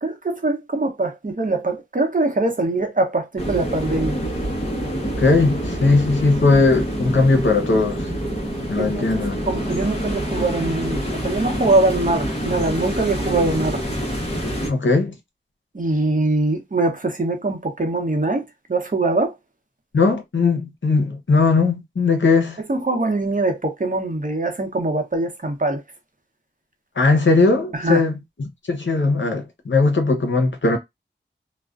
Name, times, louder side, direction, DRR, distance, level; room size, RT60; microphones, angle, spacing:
voice 1, 0.0-4.2 8.8-13.8 15.7-19.3 22.7-25.8 27.7-28.0, right 2 dB, 45° right, 0.8 m, -22 dB
sound 1, 3.4-14.7, equal, 30° left, 0.9 m, -26 dB
voice 2, 5.2-8.1 8.7-9.4 14.7-15.1 19.9-22.6 27.0-28.1 28.7-30.8, left 3 dB, 75° left, 0.7 m, -18 dB
2.4 x 2.1 x 2.4 m
wide cardioid pair, 50°, 19 cm